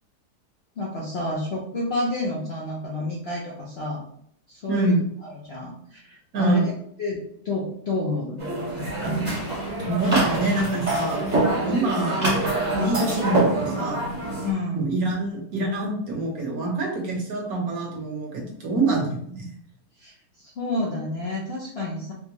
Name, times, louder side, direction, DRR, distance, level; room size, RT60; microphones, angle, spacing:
voice 1, 0.8-4.0 4.5-4.9 5.2-6.7 7.0-8.4 14.4-14.9 20.0-22.1, left 2 dB, 60° left, -4 dB, 0.7 m, -30 dB
voice 2, 4.7-5.0 6.3-6.7 9.8-12.3 12.7-14.0 14.7-19.5, right 2 dB, 65° right, 0 dB, 1.3 m, -25 dB
sound 1, 8.4-14.5, right 2 dB, 30° right, 0.9 m, -25 dB
sound 2, 8.8-12.9, left 1 dB, 75° left, 1.7 m, -41 dB
4.3 x 2.1 x 2.9 m, 0.65 s
omnidirectional pair, 1.8 m